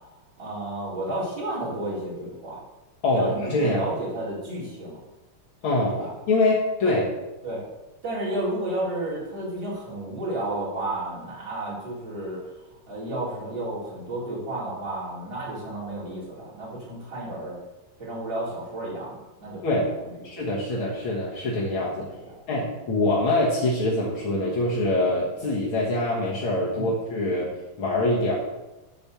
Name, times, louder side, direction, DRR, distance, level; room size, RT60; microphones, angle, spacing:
voice 1, 0.4-2.6 3.1-5.0 5.9-6.1 6.9-7.0 7.4-7.7 8.0-12.4 12.9-17.6 18.0-20.8 22.0-22.3 23.0-23.1 26.7-26.9, right 1 dB, 55° right, -8 dB, 4.7 m, -32 dB
voice 2, 3.0-3.8 5.6-5.9 6.3-7.0 19.6-19.9 20.2-22.1 22.5-28.3, left 2 dB, 75° left, -4 dB, 2.4 m, -24 dB
12.0 x 4.3 x 7.0 m, 1.1 s
omnidirectional pair, 2.4 m